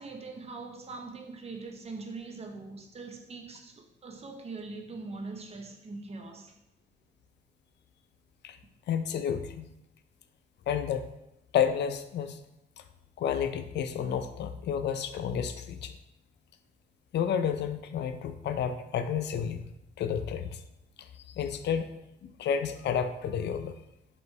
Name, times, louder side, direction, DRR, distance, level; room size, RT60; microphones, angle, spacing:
voice 1, 0.0-6.5, right 3 dB, 30° right, 3 dB, 0.7 m, -42 dB
voice 2, 8.9-9.7 10.7-11.1 11.5-12.4 13.2-16.0 17.1-19.6 20.0-20.6 21.0-22.0 22.2-23.7, left 8 dB, 60° left, 9 dB, 0.4 m, -31 dB
4.4 x 3.0 x 3.2 m, 0.87 s
cardioid pair, 90°, 20 cm